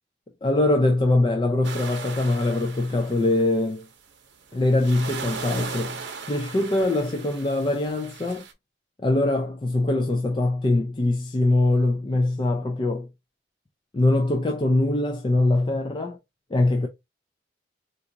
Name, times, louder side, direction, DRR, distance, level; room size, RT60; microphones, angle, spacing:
voice 1, 0.4-3.9 4.5-6.0 6.3-8.5 9.0-13.1 13.9-16.2 16.5-16.9, left 2 dB, 25° left, 0.3 m, -22 dB
sound 1, 1.6-3.8 4.4-8.5, right 5 dB, 80° right, 0.7 m, -38 dB
3.9 x 2.4 x 2.7 m
head